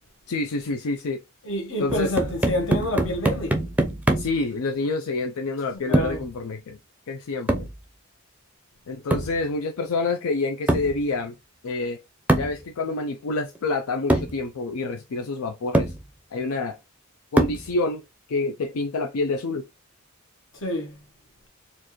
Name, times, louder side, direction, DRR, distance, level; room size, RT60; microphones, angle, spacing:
voice 1, 0.3-1.2 1.8-2.1 4.2-6.8 7.1-7.7 8.9-11.3 11.6-12.0 12.3-15.9 16.3-16.8 17.3-18.0 18.3-19.7, left 3 dB, 80° left, 0.5 m, -27 dB
voice 2, 1.4-3.6 5.7-6.2 20.5-21.0, equal, 65° left, 1.2 m, -28 dB
sound 1, 1.9-4.4 5.9-6.3 7.5-7.8 9.1-9.4 10.7-11.0 12.3-12.6 13.6-13.7 14.1-14.4 15.2-15.3 15.7-16.0 17.4-17.7, right 1 dB, 5° right, 0.5 m, -23 dB
4.4 x 2.5 x 3.0 m
head